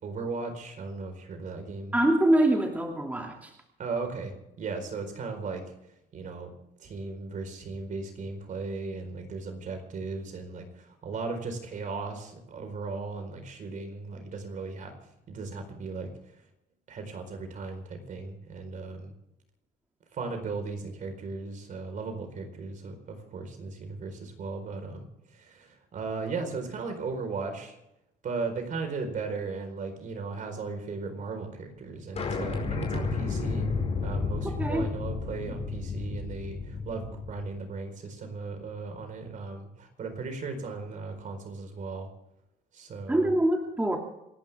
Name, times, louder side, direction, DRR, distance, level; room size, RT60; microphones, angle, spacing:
voice 1, 0.0-2.0 3.8-5.6 6.1-6.5 6.8-14.9 15.3-16.1 16.9-19.1 20.1-27.8 28.2-33.7 34.0-42.1 42.7-43.3, right 4 dB, 50° right, 6 dB, 4.5 m, -36 dB
voice 2, 1.9-3.5 34.6-34.9 35.5-35.6 43.1-44.0, right 1 dB, 10° right, 1 dB, 2.5 m, -24 dB
sound 1, 32.2-37.5, left 4 dB, 40° left, 5.1 m, -32 dB
28.0 x 11.5 x 3.6 m, 0.85 s
cardioid pair, 110°, 17 cm